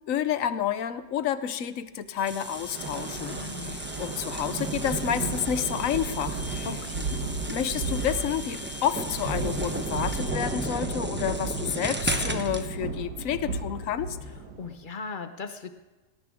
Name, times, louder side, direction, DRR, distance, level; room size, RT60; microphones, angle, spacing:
voice 1, 0.1-6.7 7.5-14.2, left 9 dB, 60° left, 13 dB, 1.0 m, -30 dB
sound 1, 2.2-11.4, left 3 dB, 20° left, 0.8 m, -47 dB
sound 2, 2.3-12.6, right 1 dB, 10° right, 0.5 m, -36 dB
sound 3, 2.5-14.7, right 4 dB, 65° right, 1.9 m, -34 dB
voice 2, 3.2-3.8 6.6-7.2 14.6-15.7, left 4 dB, 80° left, 9 dB, 0.4 m, -38 dB
20.0 x 18.0 x 3.6 m, 1.2 s
omnidirectional pair, 2.0 m